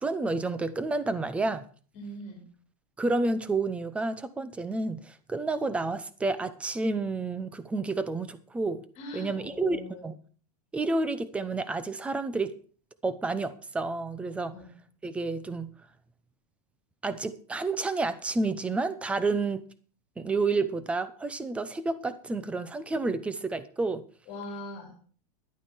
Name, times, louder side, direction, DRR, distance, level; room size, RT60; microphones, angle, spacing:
voice 1, 0.0-1.7 3.0-8.8 9.1-10.2 10.7-12.5 13.0-14.6 15.0-15.7 17.0-19.7 20.2-24.1, right 3 dB, 5° right, 0.6 m, -30 dB
voice 2, 1.9-2.4 9.0-10.0 14.5-14.7 24.3-24.9, left 1 dB, 30° left, 3.3 m, -41 dB
11.5 x 8.9 x 6.2 m
supercardioid pair, 160°, 21 cm